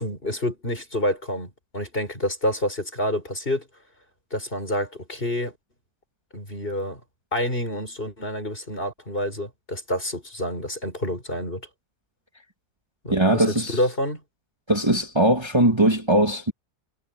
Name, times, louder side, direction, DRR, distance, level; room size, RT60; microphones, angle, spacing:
voice 1, 0.0-3.7 4.3-5.6 6.3-7.0 7.3-11.6 13.0-14.2, left 1 dB, 35° left, 7.0 m, -28 dB
voice 2, 13.1-13.8 14.7-16.5, right 1 dB, 15° right, 2.6 m, -20 dB
omnidirectional pair, 1.7 m